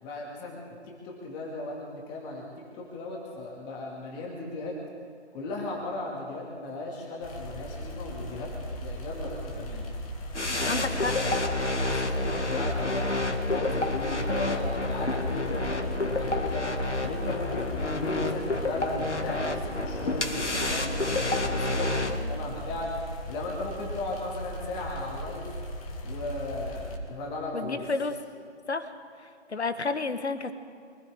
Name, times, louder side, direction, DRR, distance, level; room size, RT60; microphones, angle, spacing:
voice 1, 0.0-4.7 5.3-8.5 8.8-9.8 10.5-11.4 11.8-22.9 23.3-25.4 26.0-27.8, left 2 dB, 15° left, -2 dB, 2.0 m, -36 dB
sound 1, 7.2-27.0, equal, 30° left, 2.2 m, -38 dB
sound 2, 10.3-22.2, left 2 dB, 90° left, 1.8 m, -29 dB
voice 2, 10.7-11.1 27.5-28.1 28.7-28.9 29.5-30.5, left 3 dB, 70° left, 9 dB, 1.5 m, -30 dB
24.5 x 15.0 x 3.6 m, 2.3 s
figure-of-eight pair, 150°, 34 cm